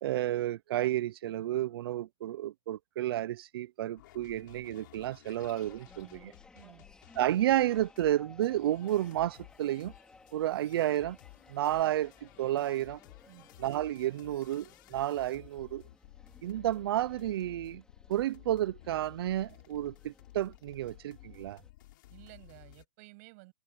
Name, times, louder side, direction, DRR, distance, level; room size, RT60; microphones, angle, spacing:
voice 1, 0.0-6.3 7.2-9.9 10.3-11.2 11.5-13.0 13.6-15.8 16.4-17.8 18.1-21.6, right 13 dB, 65° right, 0.5 m, -31 dB
sound 1, 4.0-22.9, left 17 dB, 50° left, 3.4 m, -56 dB
sound 2, 5.4-21.7, left 3 dB, 5° left, 3.0 m, -59 dB
voice 2, 6.5-6.9 13.3-13.5 22.1-23.5, right 27 dB, 35° right, 7.6 m, -54 dB
supercardioid pair, 170°, 13 cm